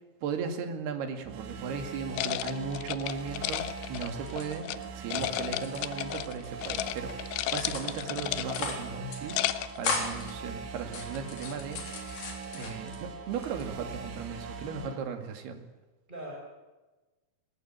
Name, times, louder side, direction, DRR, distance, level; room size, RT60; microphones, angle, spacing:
voice 1, 0.2-7.1 7.5-9.4 9.8-11.8 12.5-15.6, right 6 dB, 65° right, 7 dB, 4.0 m, -36 dB
sound 1, 1.2-15.0, right 5 dB, 80° right, 4.3 m, -42 dB
sound 2, 2.1-4.8 5.1-6.3 6.6-6.9 7.2-8.8 9.1-9.8, left 15 dB, 85° left, 3.3 m, -33 dB
sound 3, 4.2-5.3 5.5-6.5 6.8-7.1 7.6-8.1 8.4-8.9 9.1-9.2 9.5-10.3 10.8-13.0 13.4-14.1, left 4 dB, 55° left, 5.2 m, -37 dB
voice 2, 5.1-5.6 16.1-16.3, right 1 dB, 10° right, -1 dB, 5.1 m, -42 dB
20.5 x 19.0 x 9.0 m, 1.2 s
omnidirectional pair, 5.3 m